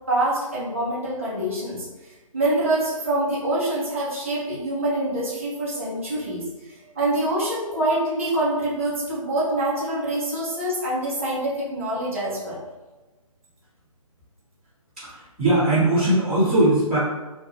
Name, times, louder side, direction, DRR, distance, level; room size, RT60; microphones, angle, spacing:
voice 1, 0.1-1.9 2.3-12.6, right 1 dB, 25° right, -8 dB, 0.4 m, -25 dB
voice 2, 15.0-17.0, right 1 dB, ahead, -27 dB, 0.8 m, -20 dB
2.2 x 2.1 x 3.0 m, 1.2 s
hypercardioid pair, 175°, 18 cm